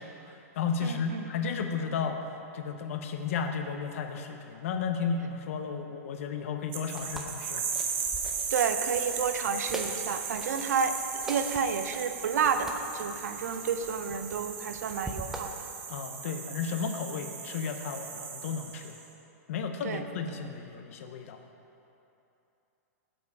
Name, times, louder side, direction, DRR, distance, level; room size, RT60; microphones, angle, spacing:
voice 1, 0.0-7.7 15.9-18.9 19.5-21.4, left 5 dB, 55° left, 6 dB, 0.7 m, -33 dB
voice 2, 0.8-1.3 8.5-11.0 11.2-15.5 19.8-20.1, right 6 dB, 75° right, 9 dB, 0.6 m, -30 dB
sound 1, 6.7-19.0, right 6 dB, 45° right, 1.0 m, -37 dB
sound 2, 7.0-15.4, right 1 dB, 5° right, 0.5 m, -44 dB
7.7 x 7.2 x 4.7 m, 2.9 s
hypercardioid pair, 160°, 9 cm